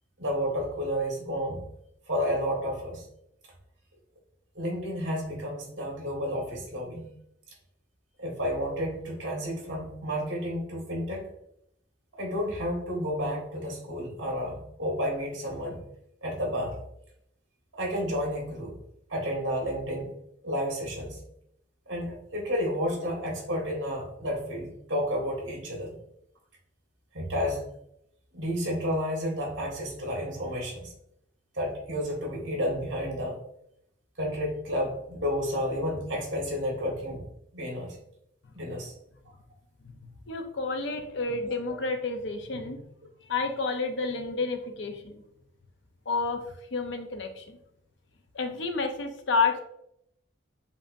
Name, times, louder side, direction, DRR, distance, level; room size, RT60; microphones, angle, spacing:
voice 1, 0.2-1.6 2.1-3.0 4.6-7.1 8.2-11.2 12.2-15.8 16.2-16.8 17.7-18.7 19.1-20.1 20.4-21.2 21.9-25.9 27.1-27.6 28.3-30.9 31.5-33.4 34.2-37.3 37.5-38.0 38.5-38.9 41.5-41.6, equal, 65° right, -1 dB, 1.8 m, -31 dB
voice 2, 40.0-42.8 43.3-45.2 46.1-46.4 46.7-47.6 48.3-49.6, left 4 dB, 65° left, 5 dB, 0.7 m, -30 dB
7.2 x 2.8 x 2.6 m, 0.75 s
head